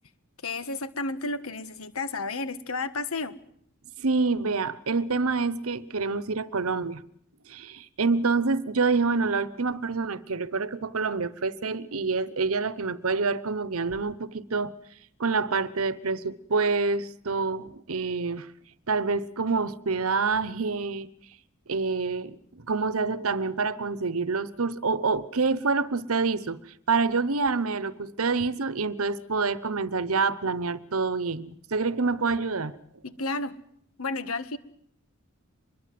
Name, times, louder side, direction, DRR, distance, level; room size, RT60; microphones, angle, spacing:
voice 1, 0.4-3.3 33.0-33.5 34.0-34.6, left 3 dB, 80° left, 1.6 m, -32 dB
voice 2, 4.0-7.0 7.5-14.7 15.2-18.5 18.9-21.1 21.7-26.6 26.9-32.8, right 4 dB, 80° right, 1.0 m, -27 dB
25.0 x 22.0 x 7.7 m
head